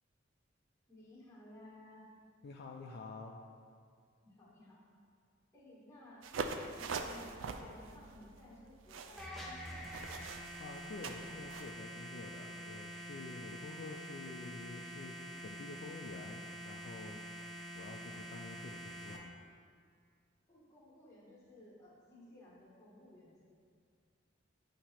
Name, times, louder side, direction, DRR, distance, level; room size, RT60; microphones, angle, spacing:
voice 1, 0.9-2.0 4.2-4.8 5.5-6.3 6.7-10.1 19.2-19.6 20.5-23.5, left 1 dB, 15° left, -7 dB, 1.5 m, -57 dB
voice 2, 2.4-3.4 10.6-15.2 15.4-17.2 17.7-19.3, left 3 dB, 55° left, 1 dB, 0.4 m, -48 dB
sound 1, 6.2-11.7, right 4 dB, 75° right, 0.4 m, -43 dB
sound 2, 9.2-19.2, equal, ahead, 0.7 m, -47 dB
8.0 x 2.9 x 4.3 m, 2.1 s
head